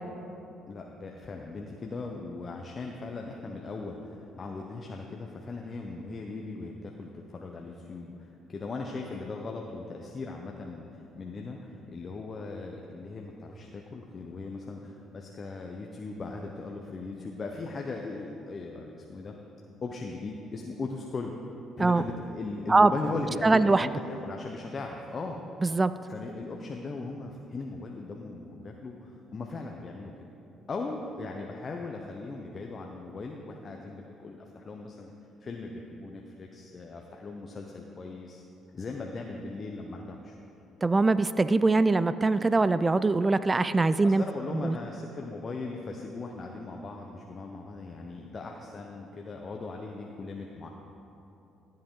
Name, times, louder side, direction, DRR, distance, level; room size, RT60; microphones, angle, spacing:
voice 1, 0.7-19.4 19.8-21.3 21.8-25.4 26.1-30.1 30.7-35.1 35.4-38.4 38.7-40.4 44.0-50.7, left 3 dB, 40° left, 1 dB, 0.8 m, -38 dB
voice 2, 23.4-23.9 25.6-25.9 40.8-44.2 44.5-44.8, right 3 dB, 25° right, 14 dB, 0.3 m, -22 dB
15.0 x 7.7 x 3.8 m, 2.9 s
hypercardioid pair, 60°, 0 cm